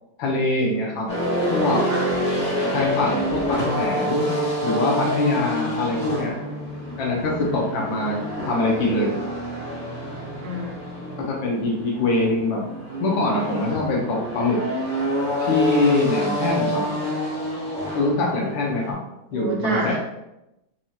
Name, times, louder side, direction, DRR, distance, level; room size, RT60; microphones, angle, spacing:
voice 1, 0.2-1.1 1.5-1.8 2.7-4.3 4.6-6.3 7.0-9.1 11.2-12.7 13.0-14.6 15.4-16.9 17.9-19.0 19.3-20.0, left 2 dB, 90° left, -2 dB, 1.7 m, -23 dB
sound 1, 1.1-18.9, equal, 5° left, 0.8 m, -27 dB
voice 2, 10.4-10.8 19.3-20.0, right 2 dB, 65° right, -2 dB, 1.2 m, -27 dB
4.7 x 2.8 x 2.4 m, 0.90 s
omnidirectional pair, 2.0 m